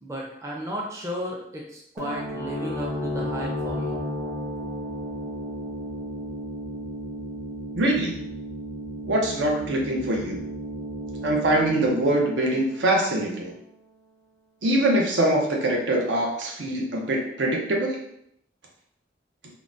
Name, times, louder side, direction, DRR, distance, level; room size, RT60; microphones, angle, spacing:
voice 1, 0.0-4.0, equal, 15° right, -2 dB, 0.4 m, -34 dB
sound 1, 2.0-13.5, equal, 45° right, 0.9 m, -34 dB
voice 2, 7.7-8.2 9.1-10.4 11.2-13.5 14.6-18.0, right 1 dB, 85° right, 0 dB, 0.7 m, -23 dB
3.7 x 2.1 x 2.5 m, 0.73 s
head